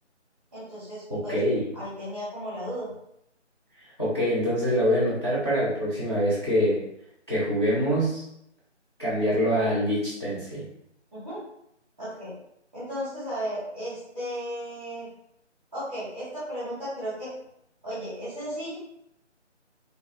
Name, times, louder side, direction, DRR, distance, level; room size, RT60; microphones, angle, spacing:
voice 1, 0.5-1.4 1.7-2.9 11.1-11.4 12.0-12.3 12.7-15.1 15.7-17.3 17.8-18.7, equal, 10° right, -15 dB, 0.9 m, -35 dB
voice 2, 1.1-1.6 4.0-6.8 7.3-8.2 9.0-10.6, equal, 25° left, -12 dB, 0.8 m, -25 dB
3.1 x 2.5 x 2.2 m, 0.75 s
figure-of-eight pair, 160°, 35 cm